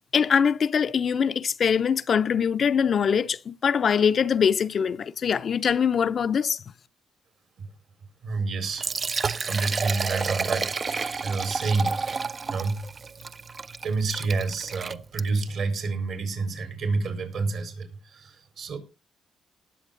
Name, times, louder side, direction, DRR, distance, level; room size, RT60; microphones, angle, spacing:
voice 1, 0.1-6.6, left 7 dB, 55° left, 0.6 m, -23 dB
voice 2, 8.2-8.9 9.4-12.8 13.8-18.8, right 4 dB, 65° right, 4.4 m, -29 dB
Liquid, 8.6-15.5, right 4 dB, 35° right, 0.5 m, -31 dB
18.5 x 7.2 x 3.8 m
cardioid pair, 95°, 0 cm